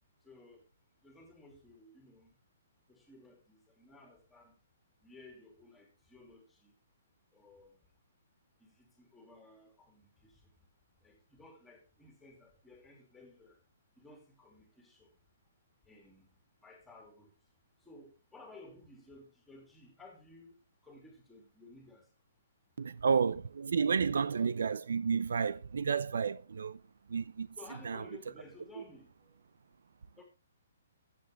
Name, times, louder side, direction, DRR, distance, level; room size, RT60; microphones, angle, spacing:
voice 1, 0.2-0.6 1.0-2.3 2.9-4.5 5.0-6.7 7.3-7.8 8.6-10.5 11.0-13.6 14.0-15.1 15.8-16.3 16.6-17.3 17.8-20.6 20.8-22.1 27.5-29.3 30.2-30.3, left 2 dB, 5° left, 2.7 m, -56 dB
voice 2, 22.8-26.8 27.1-27.5 27.9-28.0, right 6 dB, 80° right, 0.6 m, -31 dB
13.0 x 8.2 x 3.5 m
hypercardioid pair, 170°, 0 cm